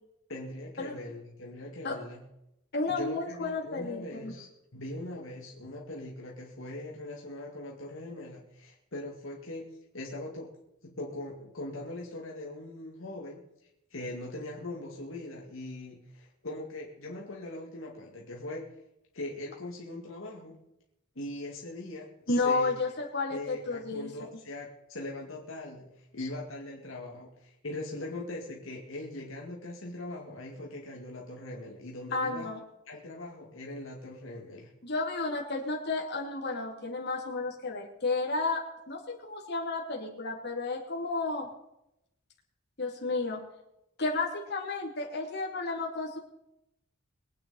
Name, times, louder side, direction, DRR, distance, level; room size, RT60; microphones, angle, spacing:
voice 1, 0.3-2.2 2.9-10.6 10.8-13.5 13.9-18.7 19.1-20.6 21.2-22.7 23.3-32.5 32.9-34.7, left 1 dB, 75° left, -2 dB, 2.3 m, -41 dB
voice 2, 2.7-4.3 22.3-24.1 32.1-32.6 34.8-38.6 38.9-41.5 42.8-43.4 44.0-46.2, left 3 dB, 55° left, -2 dB, 3.0 m, -32 dB
23.5 x 9.3 x 4.2 m, 0.85 s
head